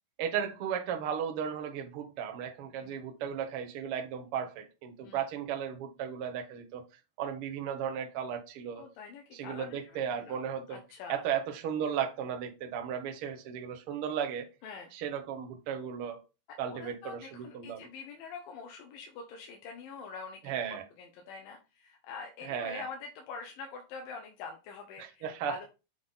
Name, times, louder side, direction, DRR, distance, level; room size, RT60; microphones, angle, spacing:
voice 1, 0.2-6.8 7.2-8.8 9.3-10.8 11.1-14.5 14.9-16.2 16.6-17.8 20.4-20.8 22.5-22.8 25.0-25.6, right 8 dB, 80° right, 1.2 m, -35 dB
voice 2, 8.7-10.4 10.7-11.2 14.6-14.9 16.7-20.5 21.0-25.7, left 5 dB, 85° left, 2.5 m, -45 dB
7.4 x 3.9 x 3.6 m
omnidirectional pair, 3.9 m